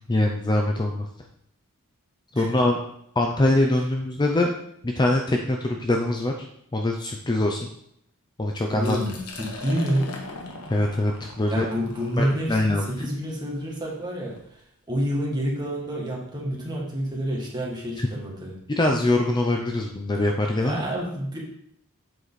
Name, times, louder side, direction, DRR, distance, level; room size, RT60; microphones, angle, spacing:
voice 1, 0.1-1.1 2.3-2.8 3.2-4.5 4.8-6.5 6.7-7.7 8.4-9.0 10.7-11.7 12.2-12.9 18.0-18.1 18.8-20.9, left 1 dB, 20° left, 2 dB, 0.5 m, -23 dB
voice 2, 8.7-10.1 11.5-14.6 14.9-18.5 20.6-21.4, equal, 20° right, -4 dB, 2.0 m, -28 dB
Liquid, 8.8-14.5, left 2 dB, 85° left, 1.4 m, -41 dB
7.7 x 4.9 x 4.1 m, 0.72 s
head